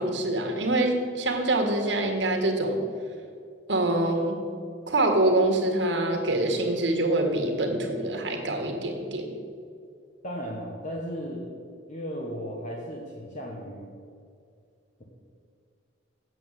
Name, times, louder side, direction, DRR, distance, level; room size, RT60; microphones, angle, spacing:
voice 1, 0.0-2.8 3.7-4.4 4.9-9.3, right 1 dB, 70° right, 3 dB, 1.6 m, -25 dB
voice 2, 10.2-11.5 11.9-13.9, equal, 40° left, -2 dB, 1.2 m, -35 dB
8.3 x 7.4 x 7.4 m, 2.3 s
head